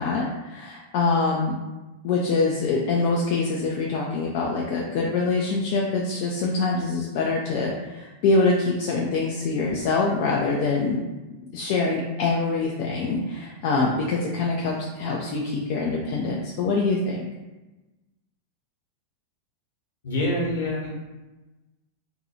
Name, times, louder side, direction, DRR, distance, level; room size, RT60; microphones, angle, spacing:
voice 1, 0.0-1.6 2.0-11.0 11.5-17.2, left 3 dB, 45° left, -2 dB, 0.3 m, -24 dB
voice 2, 20.0-20.9, left 1 dB, 65° left, -5 dB, 0.9 m, -25 dB
2.6 x 2.3 x 2.8 m, 1.1 s
figure-of-eight pair, 90°, 0 cm